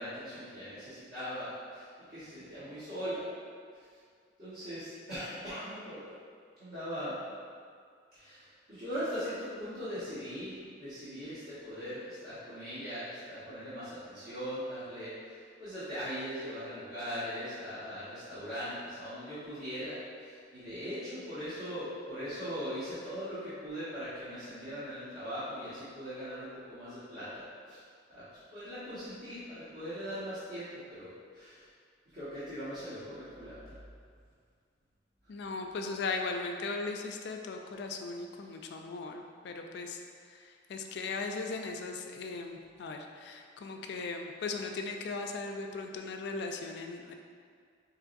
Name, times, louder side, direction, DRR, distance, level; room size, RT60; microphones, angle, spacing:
voice 1, 0.0-3.3 3.7-3.8 4.4-6.1 6.6-7.2 8.1-27.8 28.1-28.2 28.5-31.7 32.1-33.7, equal, 50° right, -16 dB, 1.1 m, -40 dB
voice 2, 35.3-47.1, left 3 dB, 60° left, 3 dB, 0.3 m, -38 dB
4.6 x 2.9 x 2.5 m, 2.1 s
head